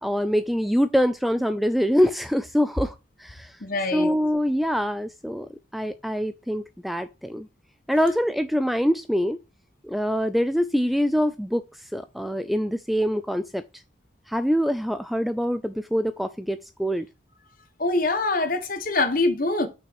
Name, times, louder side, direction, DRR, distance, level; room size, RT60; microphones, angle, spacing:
voice 1, 0.0-3.6 3.9-7.5 7.9-9.4 9.8-13.6 14.3-17.1, equal, ahead, 0.3 m, -24 dB
voice 2, 3.6-4.1 17.8-19.7, left 2 dB, 45° left, 1.3 m, -24 dB
6.2 x 5.8 x 4.5 m
head